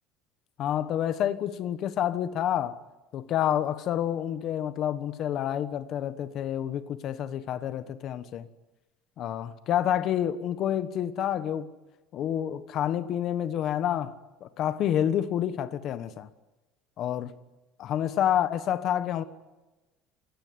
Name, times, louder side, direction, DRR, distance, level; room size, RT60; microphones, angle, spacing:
voice 1, 0.6-2.8 3.1-8.5 9.2-11.7 12.1-16.3 17.0-17.3 17.8-19.2, left 10 dB, 40° left, 1.2 m, -28 dB
28.0 x 17.5 x 9.6 m
cardioid pair, 175°, 0 cm